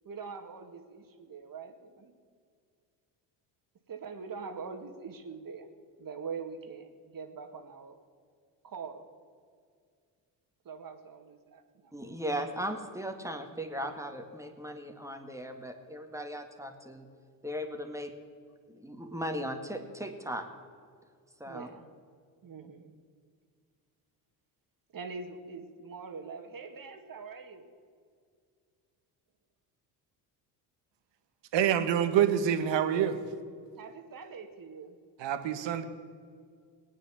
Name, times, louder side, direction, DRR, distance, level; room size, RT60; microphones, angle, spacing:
voice 1, 0.0-2.1 3.9-5.7 6.0-8.0 8.6-9.1 10.6-11.9 21.5-21.9 22.4-22.9 24.9-27.7 33.8-35.0, right 5 dB, 45° right, 6 dB, 2.1 m, -43 dB
voice 2, 11.9-17.1 17.4-18.1 18.7-20.4 21.4-21.7, equal, 5° right, 5 dB, 2.1 m, -37 dB
voice 3, 31.5-33.2 35.2-35.8, right 9 dB, 60° right, 9 dB, 1.6 m, -26 dB
18.5 x 9.3 x 7.4 m, 2.1 s
supercardioid pair, 75°, 48 cm